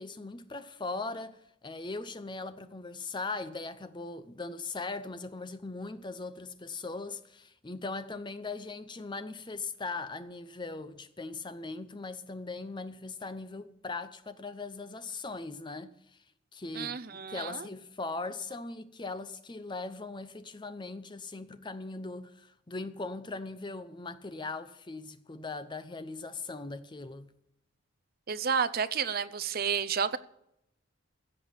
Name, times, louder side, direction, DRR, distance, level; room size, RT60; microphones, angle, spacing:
voice 1, 0.0-15.9 16.5-17.0 17.3-27.3, left 3 dB, 20° left, 0.6 m, -39 dB
voice 2, 16.7-17.7 28.3-30.2, right 6 dB, 45° right, 0.6 m, -31 dB
16.0 x 6.6 x 8.8 m
head